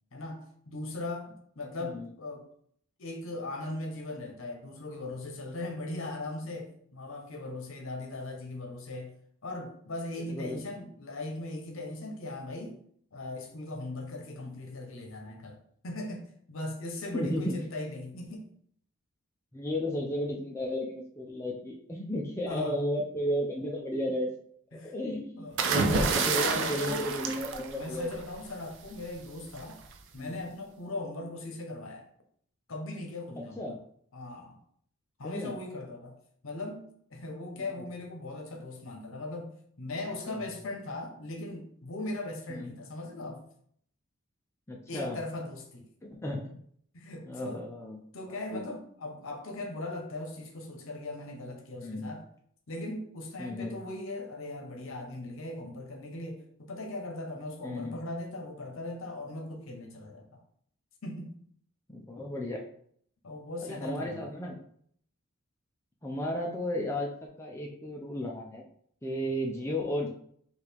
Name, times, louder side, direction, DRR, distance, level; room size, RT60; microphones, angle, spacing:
voice 1, 0.7-2.4 3.0-9.1 9.4-12.8 13.1-15.6 15.8-18.5 22.5-22.8 24.7-24.9 25.4-27.1 27.7-29.8 30.1-32.1 32.7-33.8 34.1-34.6 35.2-36.2 36.4-43.5 44.9-45.9 46.9-47.7 48.1-52.2 52.7-60.3 61.0-61.3 63.2-64.3, left 2 dB, 65° left, 3 dB, 0.8 m, -39 dB
voice 2, 10.2-10.6 17.1-17.5 19.5-24.3 24.8-28.2 30.2-30.4 33.6-33.8 35.2-35.5 37.6-37.7 40.3-40.6 42.5-42.7 44.7-45.2 46.0-46.6 47.3-48.0 48.3-48.6 51.8-52.1 53.4-53.8 57.6-58.0 61.9-62.6 63.6-64.6 66.0-67.1 67.4-68.6 69.0-70.1, left 1 dB, 10° left, -1 dB, 0.4 m, -34 dB
sound 1, 25.6-28.3 29.6-29.9, right 4 dB, 55° right, 0.4 m, -28 dB
4.7 x 2.4 x 3.4 m, 0.64 s
head